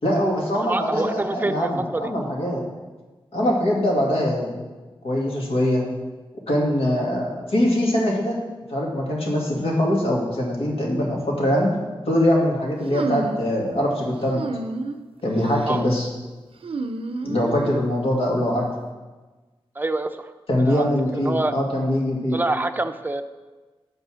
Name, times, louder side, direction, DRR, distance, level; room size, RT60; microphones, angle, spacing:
voice 1, 0.0-2.6 3.3-4.7 5.0-5.8 6.5-8.4 8.7-11.7 12.1-14.5 15.2-16.1 17.2-18.7 20.5-22.4, equal, 75° left, -3 dB, 2.2 m, -22 dB
voice 2, 0.6-2.0 15.6-15.8 19.8-20.3 20.7-20.9 21.2-21.5 22.3-23.2, right 2 dB, 20° right, 8 dB, 0.5 m, -26 dB
sound 1, 12.9-13.5 14.3-15.0 15.4-15.8 16.6-17.8, right 3 dB, 70° right, 0.5 m, -30 dB
8.0 x 5.5 x 6.2 m, 1.3 s
wide cardioid pair, 90°, 10 cm